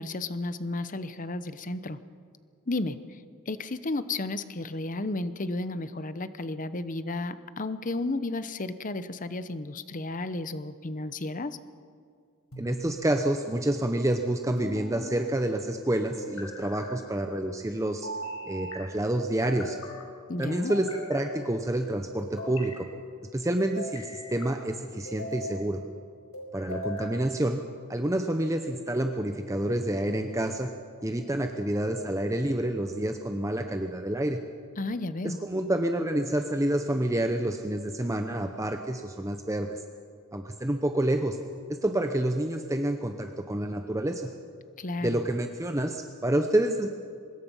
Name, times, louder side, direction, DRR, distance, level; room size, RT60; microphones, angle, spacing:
voice 1, 0.0-2.0 2.7-3.2 3.5-11.6 20.3-20.7 34.8-35.4 44.8-45.2, left 2 dB, 35° left, 13 dB, 0.8 m, -33 dB
sound 1, 12.5-13.2 14.6-15.3 16.2-16.9 18.0-18.8 19.4-20.1 20.7-21.5 22.2-22.8 23.6-24.5 25.0-25.6 26.3-27.1, equal, 90° left, 4.8 m, -39 dB
voice 2, 12.6-18.1 18.5-19.8 20.4-22.9 23.3-25.8 26.5-27.6 27.9-30.7 31.0-34.4 35.2-39.8 40.3-41.4 41.8-44.3 45.0-46.9, right 1 dB, 15° right, 5 dB, 0.8 m, -28 dB
24.5 x 20.5 x 5.5 m, 2.2 s
head